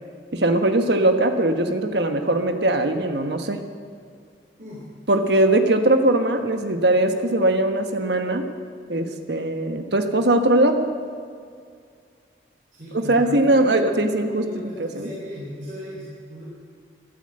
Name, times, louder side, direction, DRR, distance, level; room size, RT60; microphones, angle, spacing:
voice 1, 0.3-3.6 5.1-8.5 8.9-10.9 12.9-14.5 14.8-15.1, right 1 dB, 65° right, 6 dB, 1.3 m, -20 dB
voice 2, 12.8-16.4, equal, 45° right, -6 dB, 3.5 m, -37 dB
14.0 x 12.5 x 7.8 m, 2.2 s
head